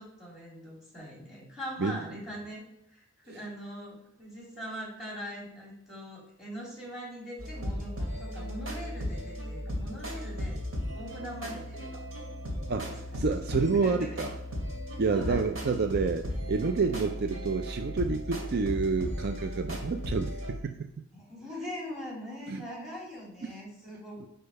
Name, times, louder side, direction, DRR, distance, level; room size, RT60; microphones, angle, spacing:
voice 1, 0.0-2.6 2.9-10.6 10.9-12.0 12.7-13.2 13.5-14.3 15.1-15.5 21.1-24.3, equal, ahead, -4 dB, 2.8 m, -42 dB
sound 1, 7.4-20.6, equal, 85° right, 2.5 m, -36 dB
voice 2, 12.7-14.3 15.0-20.9 22.5-22.6 23.4-23.5 24.2-24.3, right 4 dB, 55° right, 7 dB, 0.4 m, -29 dB
6.6 x 5.5 x 5.3 m, 0.76 s
head